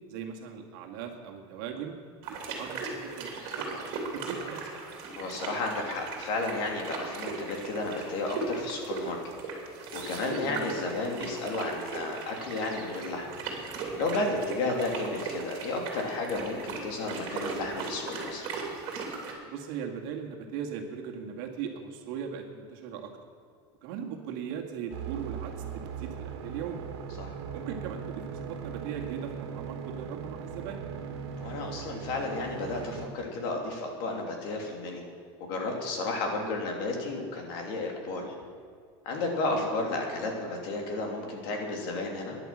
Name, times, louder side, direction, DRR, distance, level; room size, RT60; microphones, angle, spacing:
voice 1, 0.1-2.0 2.3-4.6 10.3-10.6 19.4-23.1 23.8-26.9 27.5-30.8 36.3-36.7 39.5-39.6, right 7 dB, 60° right, 2 dB, 2.0 m, -39 dB
sound 1, 2.2-19.3, right 4 dB, 45° right, 3.0 m, -38 dB
voice 2, 5.2-9.2 9.9-13.3 14.0-18.5 27.2-27.4 31.4-35.1 35.4-38.3 39.0-42.4, left 2 dB, 60° left, 1 dB, 2.9 m, -32 dB
sound 2, 24.9-33.1, right 7 dB, 90° right, 1.9 m, -39 dB
14.0 x 11.0 x 7.5 m, 2.2 s
supercardioid pair, 175°, 13 cm